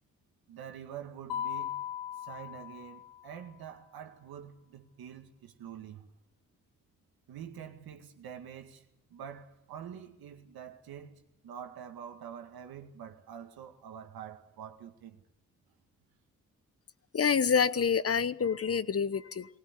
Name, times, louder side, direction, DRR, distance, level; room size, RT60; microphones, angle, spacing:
voice 1, 0.5-1.7 2.2-6.1 7.3-8.8 9.1-15.2, right 8 dB, 85° right, 2.0 m, -46 dB
Mallet percussion, 1.3-3.4, left 10 dB, 85° left, 3.2 m, -38 dB
voice 2, 17.1-19.5, left 6 dB, 40° left, 1.0 m, -27 dB
20.0 x 18.0 x 9.7 m
supercardioid pair, 55°, 35 cm